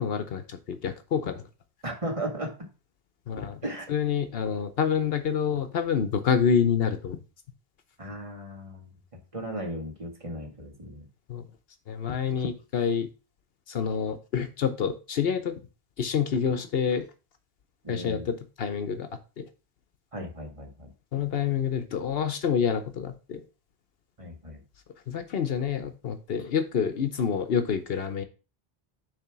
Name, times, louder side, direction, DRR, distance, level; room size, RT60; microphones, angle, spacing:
voice 1, 0.0-1.4 3.3-3.6 3.9-7.2 11.3-11.4 11.9-13.1 13.7-15.6 16.0-17.1 17.9-19.1 19.4-19.5 21.1-23.4 25.1-28.2, left 7 dB, 70° left, 9 dB, 0.9 m, -27 dB
voice 2, 1.8-2.6 3.6-3.9 8.0-8.9 9.3-11.1 17.8-18.3 20.1-20.9 24.2-24.6, right 1 dB, 30° right, 1 dB, 1.7 m, -36 dB
6.9 x 3.3 x 5.8 m, 0.33 s
omnidirectional pair, 1.0 m